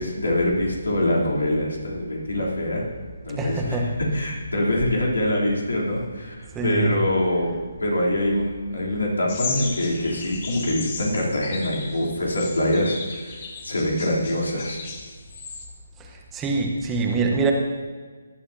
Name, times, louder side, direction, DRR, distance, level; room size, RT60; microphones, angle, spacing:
voice 1, 0.0-2.8 3.3-7.5 7.8-13.4 13.6-14.8, left 1 dB, 80° left, -3 dB, 3.3 m, -24 dB
voice 2, 3.4-3.9 6.5-7.0 16.3-17.5, right 4 dB, 15° right, 1 dB, 1.1 m, -24 dB
sound 1, 9.3-15.7, left 5 dB, 40° left, 1.7 m, -36 dB
18.0 x 11.0 x 2.8 m, 1.5 s
figure-of-eight pair, 150°, 0 cm